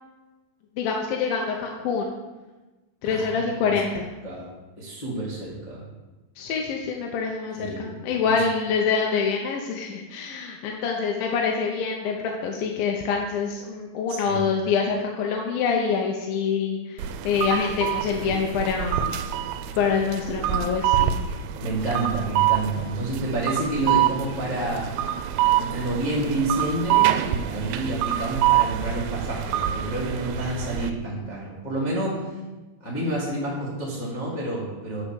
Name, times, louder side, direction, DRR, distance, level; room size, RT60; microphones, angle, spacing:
voice 1, 0.8-2.1 3.0-4.1 6.4-19.1 19.8-21.2, left 5 dB, 80° left, 1 dB, 2.4 m, -26 dB
voice 2, 3.1-3.8 4.2-4.5 4.8-5.8 7.5-8.4 14.1-14.4 21.6-24.9 25.6-32.3 32.8-35.0, right 2 dB, 45° left, -6 dB, 0.5 m, -29 dB
sound 1, 17.0-30.9, right 11 dB, 85° right, 2.4 m, -26 dB
8.1 x 4.9 x 6.9 m, 1.2 s
omnidirectional pair, 4.3 m